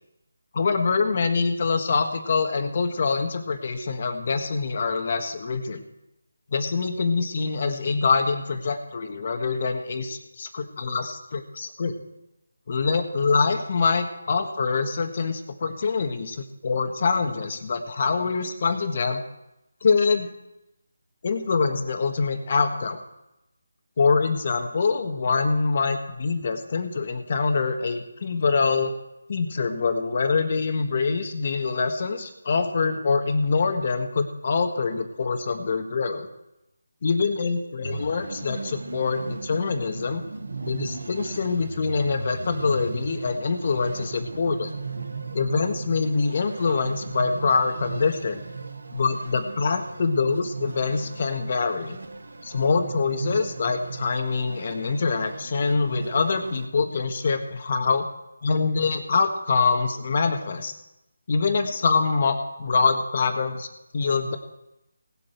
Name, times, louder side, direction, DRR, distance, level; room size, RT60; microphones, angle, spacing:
voice 1, 0.5-5.8 6.5-12.0 12.7-19.2 19.8-20.3 21.2-23.0 24.0-28.9 29.3-36.3 37.0-40.2 40.7-44.7 45.3-48.4 48.9-52.0 52.4-58.1 58.4-60.7 61.3-63.7 63.9-64.4, left 4 dB, 45° left, 7 dB, 1.5 m, -25 dB
sound 1, 37.8-56.7, right 4 dB, 75° right, 1.2 m, -37 dB
19.0 x 7.9 x 4.5 m, 0.88 s
figure-of-eight pair, 160°, 0 cm